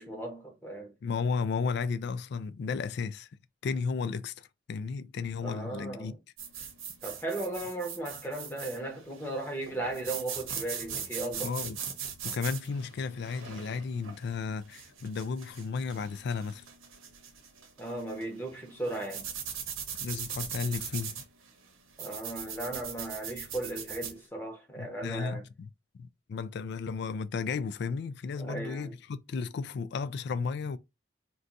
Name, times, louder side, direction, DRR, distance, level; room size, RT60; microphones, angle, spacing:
voice 1, 0.0-0.9 5.4-6.2 7.0-11.5 17.8-19.3 22.0-25.4 28.4-28.9, right 2 dB, 10° left, 0.8 m, -36 dB
voice 2, 1.0-3.3 3.6-6.1 11.4-11.8 12.2-16.6 20.0-21.2 24.8-25.7 26.0-30.8, left 5 dB, 55° left, 0.3 m, -34 dB
sound 1, 6.4-24.2, right 7 dB, 90° right, 0.8 m, -41 dB
2.5 x 2.3 x 3.9 m
head